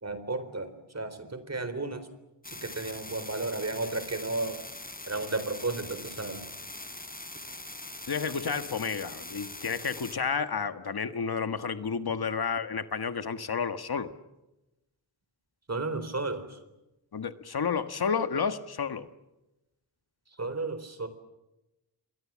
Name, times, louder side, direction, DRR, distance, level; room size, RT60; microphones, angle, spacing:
voice 1, 0.0-2.1 2.5-4.6 5.0-6.5 15.7-16.6 20.4-21.1, right 3 dB, 40° right, 12 dB, 3.9 m, -33 dB
sound 1, 2.4-10.1, left 2 dB, 20° left, 3.7 m, -42 dB
voice 2, 8.1-14.1 17.1-19.1, left 6 dB, 65° left, 10 dB, 1.5 m, -31 dB
29.5 x 22.0 x 7.5 m, 0.96 s
wide cardioid pair, 75°, 41 cm